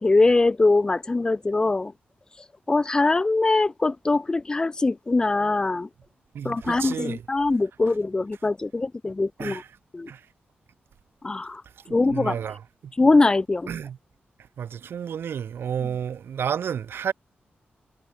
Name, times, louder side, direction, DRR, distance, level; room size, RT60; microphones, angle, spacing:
voice 1, 0.0-1.9 2.7-5.9 6.4-9.6 9.9-10.1 11.2-11.6 11.9-12.4 13.0-13.7, left 3 dB, 20° left, 1.8 m, -22 dB
voice 2, 6.3-7.2 9.4-9.7 10.1-10.3 11.8-12.9 13.7-14.0 14.6-17.1, right 8 dB, 85° right, 7.8 m, -31 dB
wide cardioid pair, 180°, 4 cm